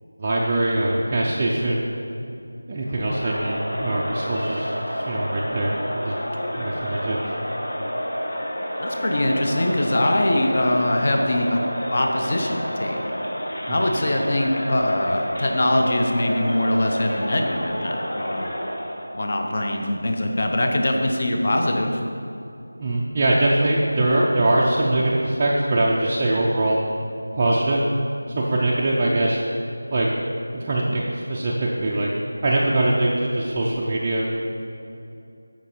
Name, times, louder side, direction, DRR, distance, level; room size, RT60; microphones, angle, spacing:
voice 1, 0.2-1.9 2.7-6.1 6.5-7.4 13.7-13.8 22.8-26.8 27.3-27.8 28.3-29.4 29.9-30.1 30.5-32.1 32.4-34.4, right 1 dB, 15° right, -5 dB, 0.4 m, -22 dB
Crowd, 2.8-19.1, equal, 75° left, 2.2 m, -30 dB
voice 2, 8.8-11.6 11.9-13.0 13.7-18.5 19.1-22.0, left 1 dB, 30° left, 2 dB, 0.7 m, -22 dB
13.5 x 5.2 x 4.4 m, 2.7 s
figure-of-eight pair, 180°, 0 cm